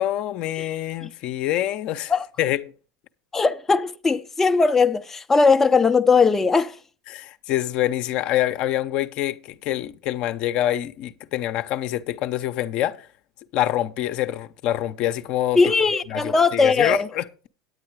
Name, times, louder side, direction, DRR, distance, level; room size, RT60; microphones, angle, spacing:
voice 1, 0.0-2.1 2.4-2.6 7.1-13.1 13.5-15.6 16.1-17.5, left 13 dB, 50° left, 0.7 m, -26 dB
voice 2, 3.3-6.8 15.5-17.1, left 4 dB, 15° left, 0.5 m, -19 dB
9.6 x 8.6 x 4.6 m
hypercardioid pair, 90°, 2 cm